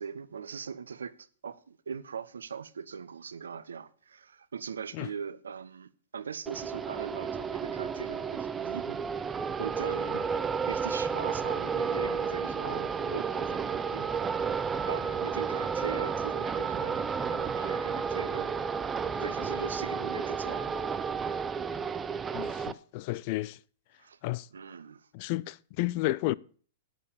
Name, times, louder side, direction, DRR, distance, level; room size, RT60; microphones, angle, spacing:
voice 1, 0.0-9.0 9.6-10.2 10.7-14.1 14.4-18.6 19.2-20.8 24.0-24.2 24.5-25.1, right 6 dB, 85° right, 0.8 m, -40 dB
sound 1, 6.5-22.7, right 6 dB, 15° right, 0.6 m, -32 dB
voice 2, 22.3-23.6 24.2-24.4 25.1-26.3, left 17 dB, 50° left, 0.5 m, -32 dB
9.4 x 7.5 x 6.9 m
hypercardioid pair, 120°, 0 cm